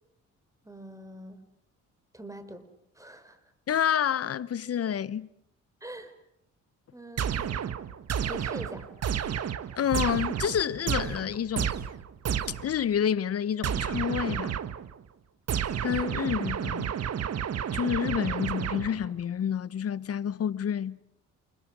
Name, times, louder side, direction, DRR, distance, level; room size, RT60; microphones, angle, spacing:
voice 1, 0.6-1.4 2.1-2.7 2.9-3.4 5.8-6.1 6.9-7.6 8.2-8.9, right 1 dB, 10° right, 5.1 m, -43 dB
voice 2, 3.7-5.3 9.8-11.7 12.5-14.5 15.8-16.9 17.7-21.0, left 9 dB, 50° left, 1.1 m, -29 dB
sound 1, 7.2-12.8 13.6-14.9 15.5-19.2, right 8 dB, 55° right, 1.6 m, -31 dB
29.5 x 28.5 x 6.2 m
cardioid pair, 90°, 30 cm